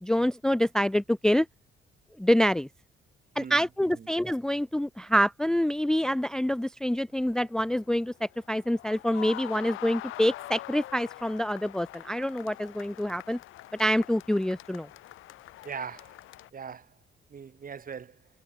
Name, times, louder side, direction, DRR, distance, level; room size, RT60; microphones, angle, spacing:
voice 1, 0.0-1.5 2.2-2.7 3.4-13.4 13.8-14.9, equal, 5° left, 0.5 m, -26 dB
voice 2, 3.4-4.1 15.6-16.2 16.5-17.0 17.3-18.2, right 6 dB, 45° right, 4.1 m, -41 dB
sound 1, 7.1-16.5, left 16 dB, 90° left, 2.9 m, -44 dB
cardioid pair, 90°, 20 cm